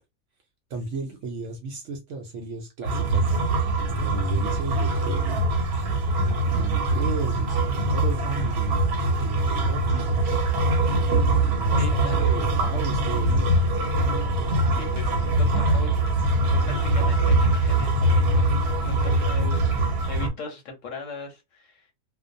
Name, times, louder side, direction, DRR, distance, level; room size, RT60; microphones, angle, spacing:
voice 1, 0.7-3.3 4.0-5.4 6.5-8.8 9.2-10.5 11.4-13.5 19.1-19.4, right 3 dB, 65° right, 0.7 m, -34 dB
sound 1, 2.8-20.3, right 2 dB, 85° right, 1.2 m, -23 dB
voice 2, 11.8-12.3 14.8-16.0 16.5-16.6 16.9-18.6 18.9-21.9, left 2 dB, 65° left, 0.9 m, -39 dB
2.5 x 2.1 x 2.5 m
omnidirectional pair, 1.6 m